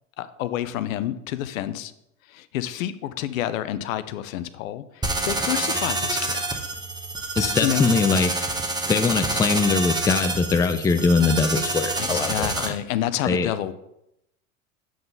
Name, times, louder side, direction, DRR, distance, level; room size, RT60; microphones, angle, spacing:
voice 1, 0.2-1.9 2.3-4.8 5.3-6.4 7.6-7.9 12.1-13.7, left 12 dB, 75° left, 13 dB, 0.7 m, -28 dB
sound 1, 5.0-12.7, right 2 dB, 10° right, 1.1 m, -27 dB
voice 2, 7.4-8.4 8.9-12.7 13.2-13.5, left 4 dB, 10° left, 8 dB, 0.4 m, -22 dB
7.7 x 3.9 x 5.3 m, 0.83 s
hypercardioid pair, 95°, 40 cm